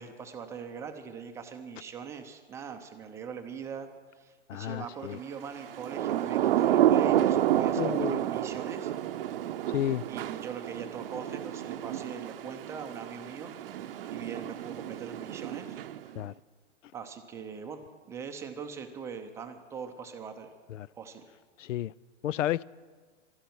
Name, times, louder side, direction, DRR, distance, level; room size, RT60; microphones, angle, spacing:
voice 1, 0.0-3.9 4.2-8.9 9.6-9.7 10.1-13.5 13.8-15.8 16.9-20.5 21.0-21.2, right 6 dB, 10° right, 0.5 m, -41 dB
voice 2, 4.5-5.2 7.8-8.3 9.7-10.0 16.2-16.3 20.7-20.9 21.6-21.9 22.2-22.6, left 12 dB, 85° left, 0.5 m, -31 dB
Thunder / Rain, 5.7-16.2, right 12 dB, 50° right, 0.7 m, -29 dB
12.5 x 11.5 x 9.3 m
hypercardioid pair, 150°, 36 cm